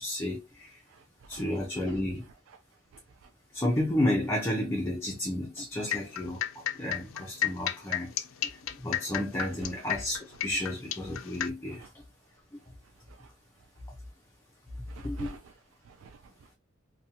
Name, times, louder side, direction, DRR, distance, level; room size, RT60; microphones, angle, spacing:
voice 1, 0.0-0.8 1.3-2.2 3.5-8.1 8.4-11.9 12.5-12.6 15.0-15.4, left 1 dB, 10° left, 0.5 m, -32 dB
voice 2, 0.9-1.5 1.9-2.0 2.5-2.6 2.9-3.3 9.4-9.8 11.7-11.9 13.1-13.3 14.9-15.5 15.8-16.5, right 4 dB, 80° right, 0.3 m, -49 dB
sound 1, 5.7-11.5, left 12 dB, 80° left, 0.3 m, -33 dB
2.6 x 2.2 x 2.7 m
head